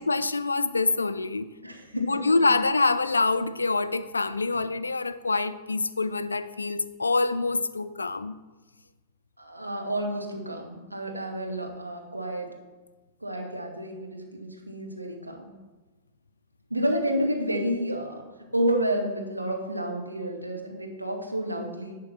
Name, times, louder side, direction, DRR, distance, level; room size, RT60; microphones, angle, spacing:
voice 1, 0.0-1.5 1.9-8.4, left 3 dB, 80° left, 14 dB, 0.4 m, -26 dB
voice 2, 1.6-2.5 9.4-12.5 13.2-15.5 16.7-18.2 18.5-21.9, right 1 dB, 90° right, 2 dB, 1.2 m, -30 dB
10.5 x 3.6 x 5.8 m, 1.2 s
figure-of-eight pair, 100°, 0 cm